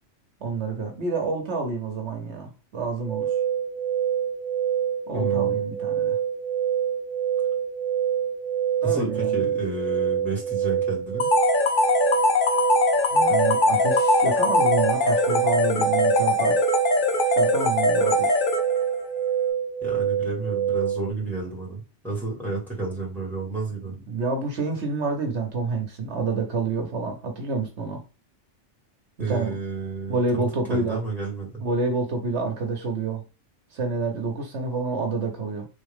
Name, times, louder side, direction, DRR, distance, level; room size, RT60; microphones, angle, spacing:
voice 1, 0.4-3.4 5.1-6.2 8.8-9.4 13.1-16.7 17.3-18.4 23.8-28.0 29.2-29.6 30.1-31.0 31.6-33.2 33.7-35.7, right 3 dB, 70° right, 4 dB, 1.1 m, -28 dB
sound 1, 3.0-21.1, right 9 dB, 45° right, 1.1 m, -26 dB
voice 2, 5.1-5.6 8.8-11.3 19.8-23.9 29.2-31.5, right 3 dB, ahead, -4 dB, 2.3 m, -31 dB
sound 2, 11.2-19.0, left 3 dB, 50° left, 0.8 m, -22 dB
4.1 x 3.5 x 3.6 m, 0.32 s
omnidirectional pair, 1.2 m